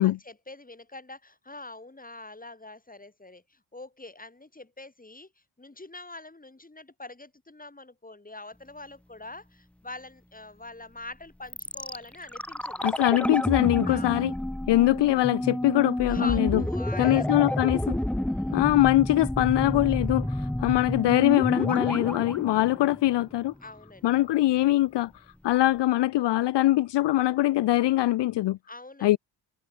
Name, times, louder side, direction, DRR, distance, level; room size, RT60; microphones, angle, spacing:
voice 1, 0.0-5.3 5.6-12.9 13.8-14.3 16.1-17.3 18.2-18.6 23.6-24.2 28.7-29.2, left 2 dB, 20° left, 6.2 m, -44 dB
sound 1, 11.5-23.5 23.8-23.9, left 1 dB, 5° left, 0.5 m, -30 dB
voice 2, 12.8-14.3 14.7-16.6 17.0-18.0 18.5-23.5 24.0-25.1 25.4-28.6 29.0-29.2, left 15 dB, 65° left, 0.6 m, -23 dB
cardioid pair, 75°, 45 cm